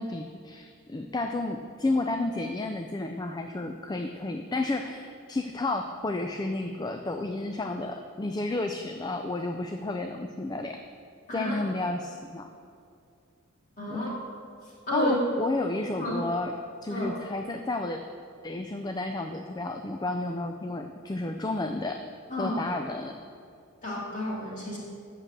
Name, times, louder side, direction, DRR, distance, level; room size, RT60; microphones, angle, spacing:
voice 1, 0.0-10.8 11.3-12.5 13.9-14.1 14.9-16.5 16.8-18.0 18.4-22.0 22.4-23.2, left 2 dB, 20° left, 5 dB, 0.3 m, -31 dB
voice 2, 13.8-14.1 14.9-15.1 16.0-16.1 16.9-17.1 22.3-22.6 23.8-24.8, left 1 dB, 35° left, -5 dB, 2.7 m, -31 dB
9.0 x 6.6 x 7.3 m, 2.4 s
head